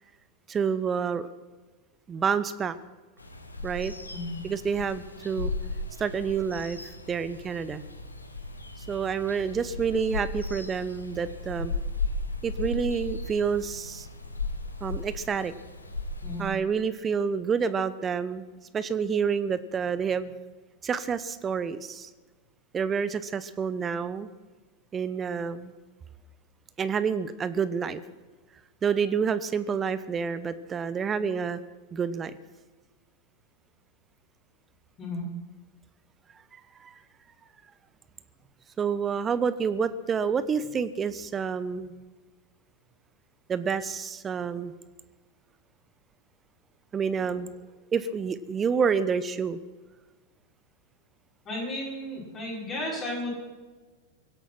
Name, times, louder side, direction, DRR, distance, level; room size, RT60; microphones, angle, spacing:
voice 1, 0.5-1.3 2.1-2.8 3.6-3.9 4.4-5.5 6.0-6.8 7.1-7.8 8.9-11.7 12.4-14.1 14.8-15.5 16.4-18.4 18.7-20.3 20.8-22.1 22.7-24.3 24.9-25.7 26.8-28.0 28.8-31.6 31.9-32.4 36.5-37.0 38.8-41.9 43.5-44.7 46.9-47.5 47.9-49.6, right 6 dB, 20° right, 15 dB, 0.9 m, -28 dB
sound 1, 3.2-16.6, left 3 dB, 80° left, 1.3 m, -36 dB
voice 2, 51.4-53.3, left 1 dB, 30° left, -5 dB, 5.9 m, -33 dB
23.5 x 8.3 x 6.1 m, 1.3 s
figure-of-eight pair, 90°, 0 cm